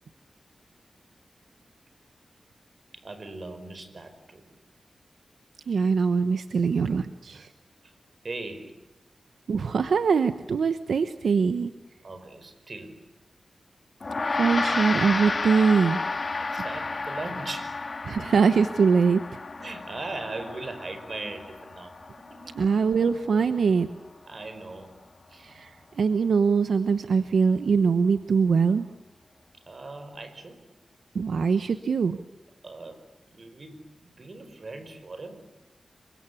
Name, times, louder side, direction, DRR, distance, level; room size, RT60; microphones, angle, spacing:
voice 1, 2.9-4.5 7.3-7.5 7.8-7.9 8.2-8.8 12.0-13.0 16.4-17.8 19.6-22.6 24.3-24.9 25.3-25.6 29.6-30.6 32.6-33.0 33.3-35.4, right 2 dB, 55° right, 9 dB, 5.3 m, -39 dB
voice 2, 5.7-7.5 9.5-11.7 14.4-16.0 18.0-19.2 22.6-23.9 25.4-28.9 31.1-32.2, right 5 dB, 90° right, 10 dB, 1.0 m, -23 dB
Gong, 14.0-23.6, left 3 dB, 50° left, 3.2 m, -32 dB
27.5 x 24.5 x 8.5 m, 0.98 s
cardioid pair, 65°, 0 cm